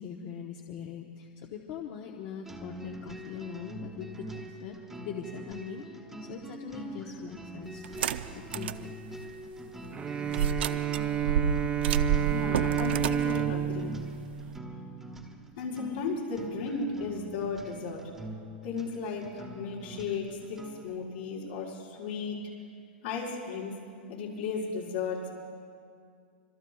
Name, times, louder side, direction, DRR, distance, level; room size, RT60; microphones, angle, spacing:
voice 1, 0.0-4.8 5.0-9.0, left 7 dB, 45° left, 1 dB, 1.1 m, -42 dB
sound 1, 2.4-21.0, right 1 dB, 5° right, 1.2 m, -44 dB
sound 2, 7.8-8.8 9.3-9.4 10.3-14.6, right 8 dB, 80° right, 0.5 m, -30 dB
Bowed string instrument, 9.9-15.3, right 10 dB, 20° right, 0.8 m, -31 dB
voice 2, 12.3-13.9 15.6-18.1 18.6-22.4 23.0-23.8 24.1-25.4, left 4 dB, 70° left, -5 dB, 5.0 m, -35 dB
26.0 x 23.0 x 2.4 m, 2.3 s
supercardioid pair, 145°, 6 cm